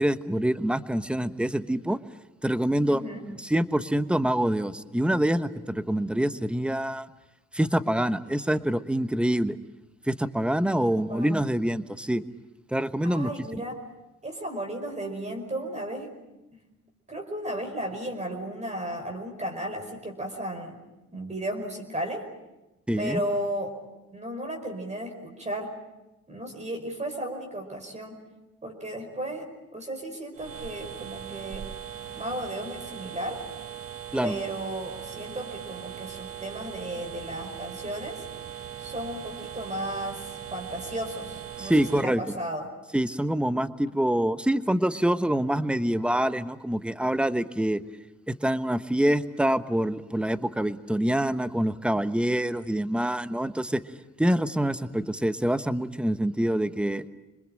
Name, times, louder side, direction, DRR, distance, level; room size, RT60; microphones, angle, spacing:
voice 1, 0.0-2.0 2.4-3.0 3.3-7.1 7.5-9.6 10.1-12.2 12.7-13.3 22.9-23.2 34.1-34.4 41.6-42.2 42.9-47.8 48.3-53.8 54.2-57.0, right 1 dB, 5° right, 11 dB, 1.1 m, -26 dB
voice 2, 2.9-3.2 10.8-11.3 13.0-13.8 14.2-16.1 17.1-20.8 21.1-22.3 23.0-23.8 24.1-25.7 26.3-28.2 28.6-31.7 32.2-33.4 34.2-38.2 38.8-41.7 42.0-42.7, right 1 dB, 25° right, 3 dB, 5.2 m, -34 dB
sound 1, 30.3-42.0, right 9 dB, 50° right, 1.3 m, -40 dB
27.0 x 21.0 x 9.0 m, 1.0 s
cardioid pair, 90°, 30 cm